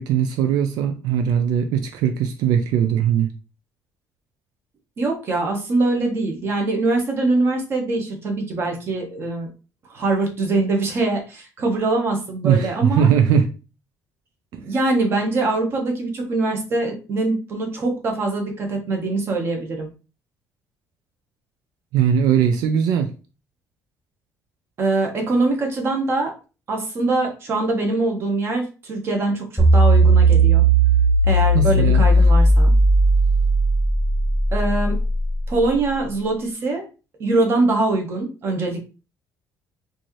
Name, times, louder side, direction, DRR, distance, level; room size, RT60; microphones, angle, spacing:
voice 1, 0.0-3.3 12.4-13.5 21.9-23.1 31.5-32.0, right 8 dB, 80° right, 6 dB, 0.5 m, -19 dB
voice 2, 5.0-9.5 9.9-13.1 14.5-19.9 24.8-26.3 26.7-30.6 31.2-32.7 34.5-35.0 35.5-36.8 37.2-38.8, right 2 dB, 35° right, 3 dB, 1.1 m, -23 dB
sound 1, 29.6-35.8, right 2 dB, ahead, 0.8 m, -16 dB
4.4 x 2.7 x 3.1 m, 0.33 s
cardioid pair, 165°, 7 cm